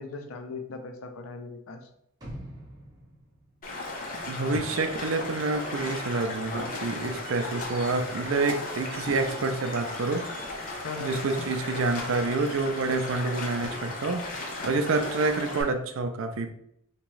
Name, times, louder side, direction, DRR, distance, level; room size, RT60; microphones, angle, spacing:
voice 1, 0.0-1.9 10.8-11.2, left 4 dB, 90° left, 6 dB, 0.5 m, -38 dB
sound 1, 2.2-4.4 4.7-4.8, equal, 20° right, 0.9 m, -45 dB
Stream, 3.6-15.6, left 2 dB, 40° left, 0.7 m, -36 dB
voice 2, 4.3-10.2 11.0-14.3 14.6-16.5, right 3 dB, 75° right, 7 dB, 0.4 m, -28 dB
sound 2, 5.2-13.1, right 2 dB, 50° right, 0.8 m, -47 dB
3.5 x 2.9 x 3.1 m, 0.73 s
head